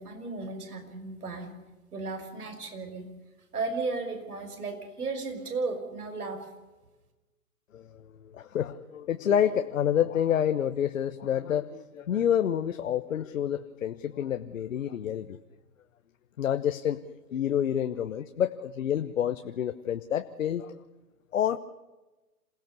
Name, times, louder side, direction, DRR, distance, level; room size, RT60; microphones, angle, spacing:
voice 1, 0.0-1.5 1.9-3.0 3.5-6.5, right 3 dB, 70° right, 4 dB, 5.9 m, -34 dB
voice 2, 7.7-15.4 16.4-17.0 17.3-20.7 21.3-21.6, left 9 dB, 55° left, 9 dB, 1.1 m, -28 dB
27.5 x 17.0 x 6.9 m, 1.1 s
figure-of-eight pair, 130°, 46 cm